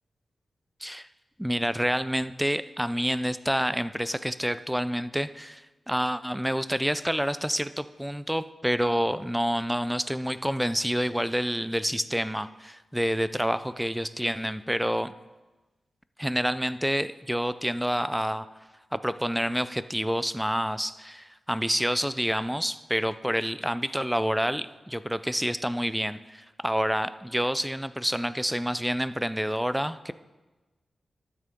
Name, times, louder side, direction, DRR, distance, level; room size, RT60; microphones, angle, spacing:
voice 1, 1.4-15.1 16.2-18.5 18.9-30.1, equal, 5° right, 14 dB, 0.3 m, -28 dB
12.0 x 6.7 x 3.6 m, 1.2 s
wide cardioid pair, 105°, 0 cm